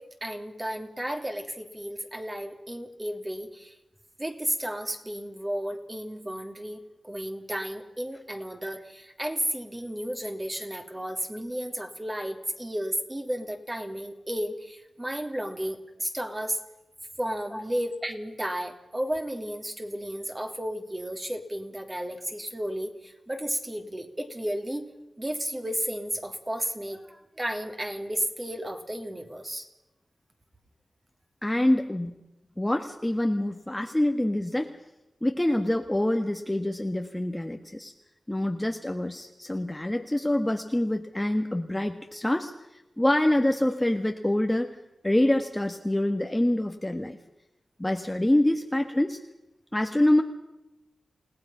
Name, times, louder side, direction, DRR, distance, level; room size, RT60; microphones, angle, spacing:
voice 1, 0.0-3.7 4.2-6.8 7.0-16.6 17.2-24.9 25.2-29.7, right 1 dB, 20° right, 4 dB, 3.0 m, -33 dB
voice 2, 31.4-32.1 32.6-34.8 35.2-37.9 38.3-42.5 43.0-44.7 45.0-47.2 47.8-49.2 49.7-50.2, left 1 dB, 10° left, 4 dB, 1.5 m, -25 dB
29.0 x 18.5 x 5.7 m, 0.96 s
wide cardioid pair, 100°, 0 cm